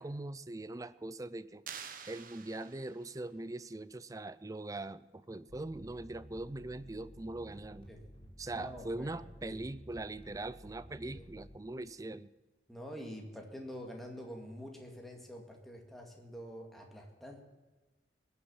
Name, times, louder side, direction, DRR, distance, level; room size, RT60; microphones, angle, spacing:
voice 1, 0.0-1.6 2.1-7.9 8.4-12.3, right 2 dB, 20° right, 16 dB, 0.5 m, -41 dB
sound 1, 1.7-3.2, right 7 dB, 50° right, 1.1 m, -48 dB
sound 2, 5.5-11.6, equal, 30° left, 4.2 m, -53 dB
voice 2, 8.5-9.1 9.4-9.6 11.1-11.2 12.7-17.4, equal, ahead, 1 dB, 2.1 m, -46 dB
20.5 x 7.0 x 7.1 m, 1.2 s
head